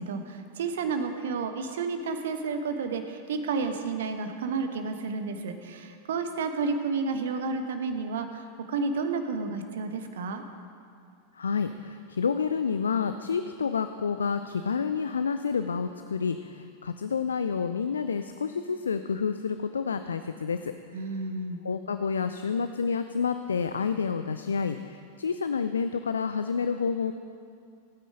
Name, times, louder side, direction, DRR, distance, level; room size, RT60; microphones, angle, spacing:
voice 1, 0.0-10.4 20.9-21.6, right 4 dB, 60° right, 7 dB, 1.1 m, -31 dB
voice 2, 11.3-20.7 21.6-27.1, left 6 dB, 70° left, 10 dB, 0.4 m, -29 dB
18.0 x 9.3 x 5.0 m, 2.4 s
figure-of-eight pair, 90°, 0 cm